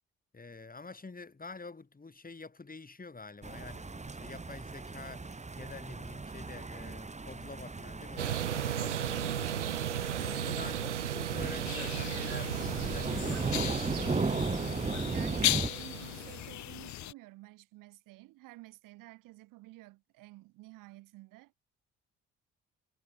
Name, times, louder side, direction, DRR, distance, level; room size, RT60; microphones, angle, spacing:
voice 1, 0.3-9.7 10.2-14.4, left 3 dB, 25° left, 6.7 m, -47 dB
sound 1, 3.4-15.7, right 3 dB, 20° right, 2.5 m, -37 dB
sound 2, 8.2-16.5, right 10 dB, 90° right, 0.8 m, -36 dB
voice 2, 10.1-10.4 15.0-21.5, right 19 dB, 65° right, 5.9 m, -52 dB
sound 3, 11.6-17.1, left 14 dB, 55° left, 1.2 m, -37 dB
figure-of-eight pair, 50°, 34 cm